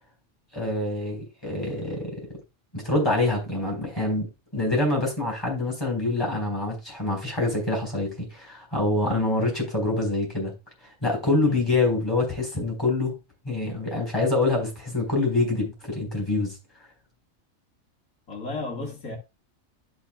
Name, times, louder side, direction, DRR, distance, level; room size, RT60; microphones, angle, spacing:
voice 1, 0.5-2.1 2.7-10.5 11.0-13.1 13.4-16.6, left 2 dB, 15° left, 4.1 m, -25 dB
voice 2, 18.3-19.2, left 3 dB, 85° left, 2.1 m, -34 dB
12.0 x 6.4 x 2.2 m
omnidirectional pair, 1.4 m